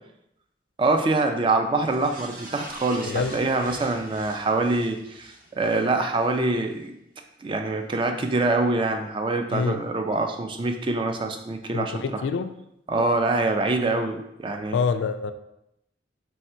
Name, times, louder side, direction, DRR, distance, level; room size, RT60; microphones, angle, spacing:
voice 1, 0.8-6.9 7.4-12.2 12.9-14.8, right 2 dB, 25° right, 5 dB, 0.3 m, -25 dB
sound 1, 1.8-6.4 6.8-6.9, right 1 dB, 45° right, 0.7 m, -43 dB
voice 2, 9.5-9.8 11.7-12.5 13.0-13.2 14.7-15.3, left 5 dB, 75° left, 9 dB, 0.3 m, -26 dB
3.2 x 2.7 x 4.4 m, 0.82 s
head